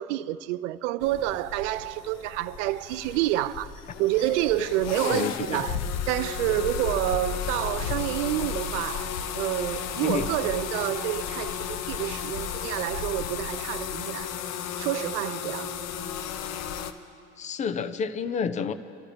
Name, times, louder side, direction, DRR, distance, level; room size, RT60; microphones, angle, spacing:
voice 1, 0.0-3.7 4.0-5.8 6.1-14.3 14.8-15.7, right 15 dB, 55° right, 0.5 m, -28 dB
sound 1, 1.0-16.9, left 7 dB, 35° left, 0.8 m, -33 dB
voice 2, 5.1-5.6 10.0-10.3 17.4-18.7, left 6 dB, 15° left, 0.4 m, -29 dB
26.0 x 13.0 x 3.3 m
figure-of-eight pair, 75°, 46 cm